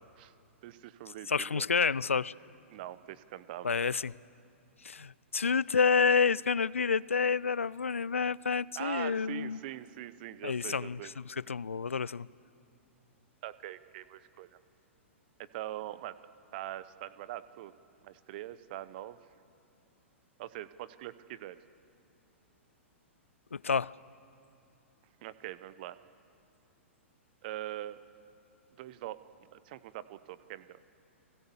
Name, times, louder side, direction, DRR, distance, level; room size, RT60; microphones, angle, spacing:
voice 1, 0.6-1.7 2.7-3.8 8.8-11.1 13.4-14.5 15.4-16.2 16.5-17.7 18.0-19.2 20.4-21.6 25.2-26.0 27.4-28.0 28.8-29.2 29.5-30.8, right 14 dB, 45° right, 1.0 m, -42 dB
voice 2, 1.3-2.3 3.6-4.1 4.8-9.6 10.4-12.3 23.5-23.9, left 5 dB, 80° left, 0.5 m, -29 dB
30.0 x 21.0 x 7.1 m
figure-of-eight pair, 110°, 7 cm